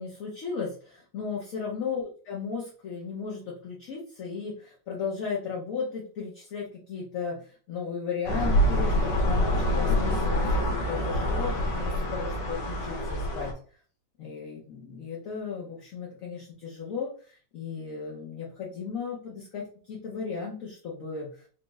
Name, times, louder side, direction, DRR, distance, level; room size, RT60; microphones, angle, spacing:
voice 1, 0.0-11.6 11.8-13.6 14.2-21.5, left 5 dB, 55° left, -3 dB, 1.0 m, -35 dB
sound 1, 8.3-13.5, equal, 70° left, 1.4 m, -26 dB
4.4 x 2.4 x 3.1 m, 0.42 s
omnidirectional pair, 2.0 m